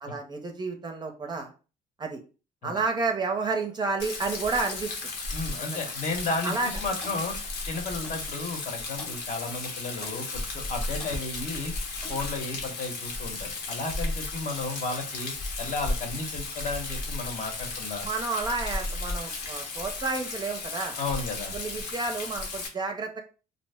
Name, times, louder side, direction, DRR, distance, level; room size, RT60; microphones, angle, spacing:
voice 1, 0.0-1.5 2.0-2.2 2.6-5.0 5.7-5.9 6.4-6.7 18.0-21.0 21.5-23.2, right 3 dB, 25° right, 3 dB, 0.5 m, -30 dB
Rain, 4.0-22.7, left 3 dB, 75° left, 0.9 m, -34 dB
voice 2, 5.3-7.4 7.7-11.7 12.1-18.1 21.0-21.6, left 3 dB, 45° left, 3 dB, 0.8 m, -33 dB
Clock, 7.0-7.2 8.0-8.2 9.0-9.2 10.0-10.3 11.0-11.2 12.0-12.3, left 1 dB, 5° left, 0.7 m, -44 dB
2.6 x 2.0 x 3.3 m, 0.34 s
cardioid pair, 110°, 17 cm